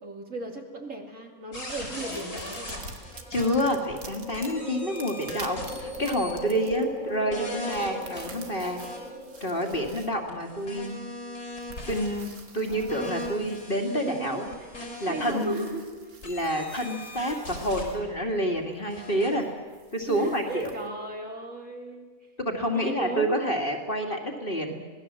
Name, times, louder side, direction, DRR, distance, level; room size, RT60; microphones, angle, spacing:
voice 1, 0.0-2.9 6.8-6.9 13.9-15.8 20.1-22.1 22.7-23.7, right 2 dB, 55° right, 2 dB, 3.1 m, -36 dB
sound 1, 1.5-4.1 4.3-6.4 6.7-6.8 7.3-9.0 9.4-15.6 16.2-17.9 18.9-19.3, left 1 dB, 90° left, 5.6 m, -40 dB
sound 2, 2.0-20.9, right 4 dB, 75° right, 2.2 m, -50 dB
sound 3, 2.9-10.6, left 1 dB, 55° left, 2.2 m, -40 dB
voice 2, 3.3-8.8 9.4-11.0 11.9-14.5 15.0-15.7 16.2-19.5 19.9-20.7 22.4-24.7, equal, 35° left, 3 dB, 2.5 m, -28 dB
26.0 x 19.0 x 7.6 m, 1.4 s
omnidirectional pair, 1.6 m